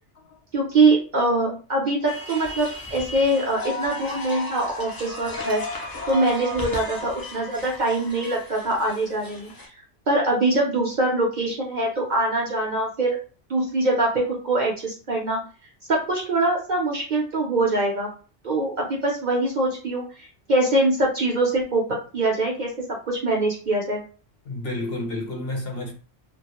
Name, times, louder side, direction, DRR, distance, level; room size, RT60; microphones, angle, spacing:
voice 1, 0.5-9.5 10.1-13.2 13.5-15.4 15.9-18.1 18.4-20.0 20.5-21.8 22.1-24.0, right 2 dB, 55° right, 0.6 m, -23 dB
sound 1, 2.1-9.7, left 1 dB, 35° left, 0.3 m, -34 dB
voice 2, 24.4-25.9, left 1 dB, 60° left, 0.9 m, -30 dB
2.2 x 2.1 x 2.9 m
omnidirectional pair, 1.2 m